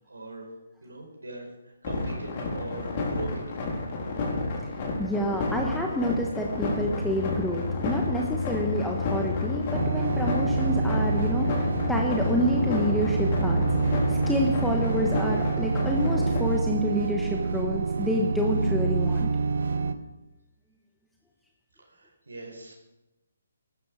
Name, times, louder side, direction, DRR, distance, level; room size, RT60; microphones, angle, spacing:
voice 1, 0.1-0.5 0.8-1.5 1.8-3.6 21.8-22.7, right 2 dB, 85° right, 1 dB, 4.7 m, -40 dB
sound 1, 1.8-16.4, left 3 dB, 40° left, 4.1 m, -31 dB
voice 2, 5.0-13.6 14.1-19.3, equal, ahead, -1 dB, 1.3 m, -28 dB
sound 2, 7.0-14.8, left 6 dB, 85° left, 1.6 m, -34 dB
sound 3, 9.7-19.9, right 4 dB, 65° right, 1.2 m, -27 dB
15.5 x 13.0 x 4.9 m, 0.99 s
figure-of-eight pair, 150°, 0 cm